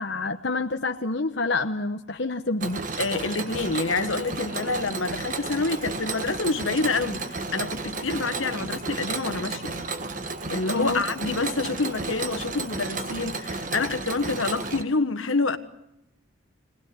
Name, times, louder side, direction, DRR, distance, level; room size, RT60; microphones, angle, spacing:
voice 1, 0.0-2.8 10.8-11.0, left 3 dB, 60° left, 1.0 m, -28 dB
Mechanisms, 2.6-14.8, right 3 dB, 40° right, 1.4 m, -33 dB
voice 2, 3.0-9.7 10.5-15.6, left 3 dB, 85° left, 1.5 m, -27 dB
25.5 x 19.0 x 9.5 m
head